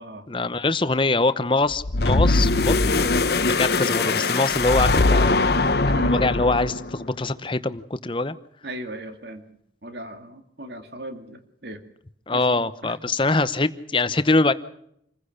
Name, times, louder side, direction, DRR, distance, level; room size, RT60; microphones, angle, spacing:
voice 1, 0.3-5.3 5.8-8.4 12.3-14.5, left 3 dB, 25° left, 13 dB, 0.9 m, -23 dB
sound 1, 1.7-6.9, left 3 dB, 55° left, 1.0 m, -21 dB
voice 2, 8.6-9.4 9.8-11.8 12.3-13.0, right 1 dB, 60° right, 7 dB, 2.3 m, -37 dB
27.0 x 15.5 x 6.6 m, 0.73 s
head